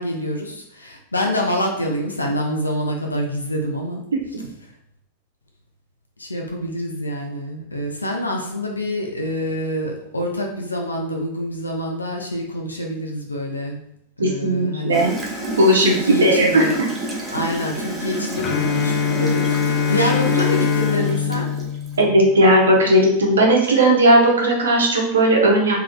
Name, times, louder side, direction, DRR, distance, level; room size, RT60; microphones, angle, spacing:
voice 1, 0.0-4.0 6.2-13.8 14.2-15.1 15.8-16.8 17.3-21.5, equal, 80° left, 1 dB, 0.6 m, -26 dB
voice 2, 14.2-15.2 15.4-16.7 22.0-25.7, right 1 dB, 70° right, -1 dB, 0.9 m, -16 dB
Gurgling / Toilet flush, 14.9-22.0, right 1 dB, 15° right, 0.8 m, -30 dB
Bowed string instrument, 18.4-22.5, left 7 dB, 35° left, 0.4 m, -22 dB
3.5 x 3.4 x 2.3 m, 0.77 s
figure-of-eight pair, 90°, 0 cm